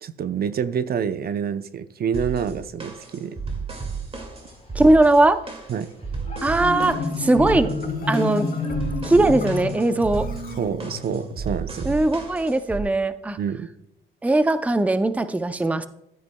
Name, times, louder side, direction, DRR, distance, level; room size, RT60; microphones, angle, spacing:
voice 1, 0.0-3.4 5.7-5.9 10.6-12.0 13.4-13.7, right 7 dB, 50° right, 12 dB, 0.6 m, -27 dB
sound 1, 2.1-12.8, right 5 dB, 30° right, 2.1 m, -33 dB
sound 2, 4.4-9.8, left 3 dB, 30° left, 3.9 m, -49 dB
voice 2, 4.7-5.4 6.4-7.7 8.1-8.5 9.0-10.3 11.9-13.4 14.2-15.9, right 2 dB, 5° right, 11 dB, 0.5 m, -19 dB
Marimba xylophone, 6.2-11.4, left 3 dB, 50° left, 2.8 m, -29 dB
12.5 x 9.5 x 2.2 m, 0.80 s
cardioid pair, 90°, 20 cm